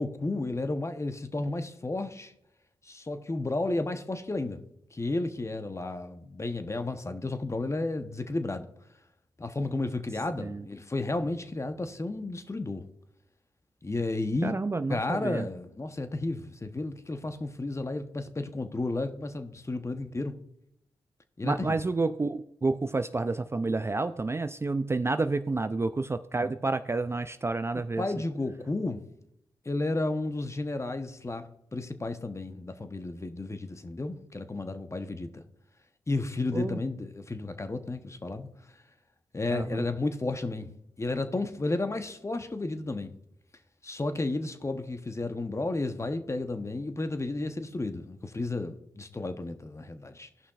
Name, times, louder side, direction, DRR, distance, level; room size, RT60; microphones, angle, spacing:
voice 1, 0.0-2.3 2.8-4.6 4.9-8.7 9.4-12.8 13.8-14.6 14.9-20.3 21.4-21.8 28.0-29.0 29.7-35.4 36.1-38.5 39.3-40.7 41.0-43.1 43.8-50.3, left 2 dB, 25° left, 0.9 m, -32 dB
voice 2, 14.4-15.5 21.4-28.1 36.5-36.8 39.5-39.8, right 3 dB, 25° right, 0.4 m, -29 dB
16.0 x 5.6 x 2.4 m
supercardioid pair, 45°, 11 cm